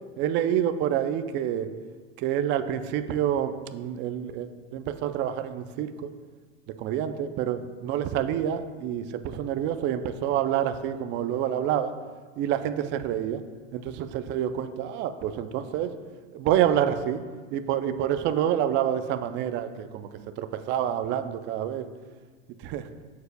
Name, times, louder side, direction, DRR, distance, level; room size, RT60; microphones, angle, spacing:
voice 1, 0.2-1.7 2.2-5.9 6.8-11.9 12.4-13.4 13.7-15.9 16.3-17.2 17.5-20.1 20.4-21.9 22.6-22.8, right 10 dB, 30° right, 9 dB, 0.4 m, -27 dB
13.5 x 4.8 x 2.2 m, 1.4 s
hypercardioid pair, 110°, 40 cm